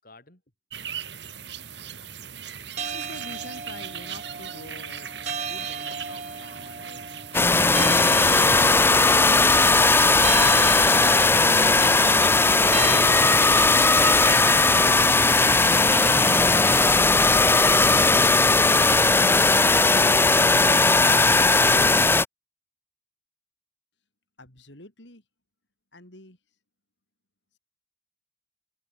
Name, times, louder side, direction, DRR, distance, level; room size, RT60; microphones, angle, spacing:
voice 1, 0.0-0.4, left 2 dB, 50° left, 6.3 m, -50 dB
sound 1, 0.7-19.0, right 8 dB, 70° right, 6.4 m, -39 dB
sound 2, 2.8-13.0, right 5 dB, 40° right, 2.2 m, -36 dB
voice 2, 2.9-5.1 5.4-7.2 24.4-25.2 25.9-26.4, left 2 dB, 75° left, 6.1 m, -47 dB
sound 3, 7.3-22.3, left 3 dB, 10° left, 0.6 m, -18 dB
head